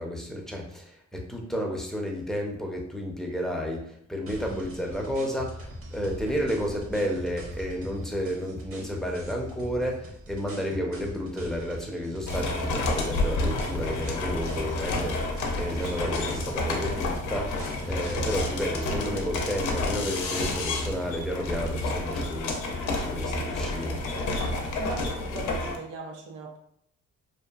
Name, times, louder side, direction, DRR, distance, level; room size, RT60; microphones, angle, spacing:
voice 1, 0.0-5.6 5.9-24.0, equal, ahead, 0 dB, 0.5 m, -32 dB
sound 1, 4.3-18.5, equal, 45° right, 0.8 m, -41 dB
sound 2, 12.3-25.8, left 2 dB, 80° left, 0.6 m, -30 dB
voice 2, 24.5-26.6, right 3 dB, 90° right, 1 dB, 0.5 m, -39 dB
2.6 x 2.3 x 2.3 m, 0.70 s
cardioid pair, 90°, 30 cm